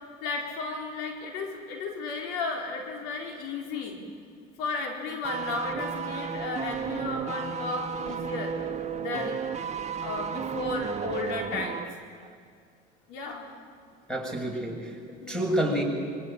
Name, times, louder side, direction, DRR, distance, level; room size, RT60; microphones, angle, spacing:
voice 1, 0.2-4.0 4.6-8.5 9.0-9.4 10.0-11.8 13.1-13.4 15.1-15.5, left 3 dB, 80° left, 2 dB, 4.4 m, -34 dB
sound 1, 5.2-11.9 12.2-12.3, right 7 dB, 30° right, 1.5 m, -33 dB
voice 2, 14.1-15.8, right 1 dB, 5° left, 2 dB, 7.0 m, -29 dB
25.0 x 24.0 x 8.9 m, 2.3 s
supercardioid pair, 90°, 21 cm